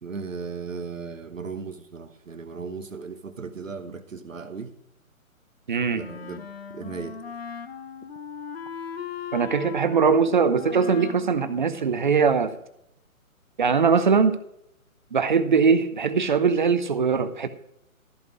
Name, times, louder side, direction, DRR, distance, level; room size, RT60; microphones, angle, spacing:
voice 1, 0.0-4.7 5.9-7.2, right 5 dB, 65° right, 9 dB, 1.1 m, -36 dB
voice 2, 5.7-6.0 9.3-12.5 13.6-14.4 15.1-17.5, right 5 dB, 35° right, 13 dB, 0.7 m, -21 dB
Wind instrument woodwind instrument, 5.9-12.5, left 6 dB, 45° left, 0.8 m, -38 dB
14.0 x 5.2 x 6.3 m, 0.77 s
figure-of-eight pair, 140°, 42 cm